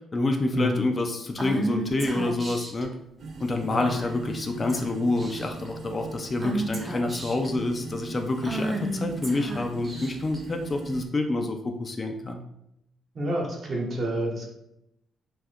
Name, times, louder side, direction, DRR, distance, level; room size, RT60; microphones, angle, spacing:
voice 1, 0.1-2.9 3.4-12.4, left 2 dB, 30° left, 4 dB, 0.4 m, -27 dB
Female speech woman speaking / Whispering, 1.4-2.8 3.9-4.3 4.7-4.9 5.2-5.7 6.4-7.5 8.4-10.4, right 1 dB, 20° right, 0.6 m, -32 dB
sound 1, 3.2-11.1, right 3 dB, 65° right, 0.4 m, -40 dB
voice 2, 13.1-14.5, right 1 dB, 45° right, -1 dB, 1.0 m, -29 dB
2.7 x 2.4 x 3.4 m, 0.81 s
cardioid pair, 90°, 0 cm